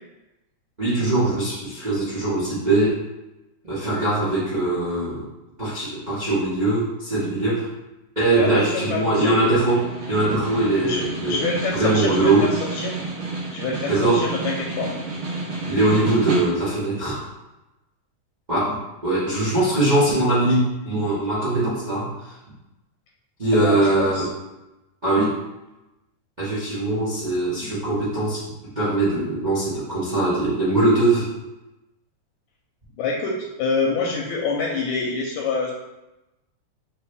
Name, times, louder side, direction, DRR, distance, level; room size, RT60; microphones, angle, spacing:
voice 1, 0.8-3.0 3.6-5.2 5.6-7.7 8.1-11.4 11.7-12.5 13.9-14.2 15.7-17.2 18.5-22.1 23.4-24.3 25.0-25.3 26.4-28.4 28.7-31.3, right 2 dB, 80° right, -10 dB, 0.4 m, -21 dB
voice 2, 8.4-9.3 10.8-12.9 13.5-14.9 23.5-24.3 33.0-35.7, left 4 dB, 80° left, -2 dB, 1.8 m, -26 dB
Snare drum, 8.9-16.9, right 3 dB, 55° right, 1.5 m, -31 dB
4.7 x 3.2 x 3.4 m, 0.98 s
omnidirectional pair, 3.6 m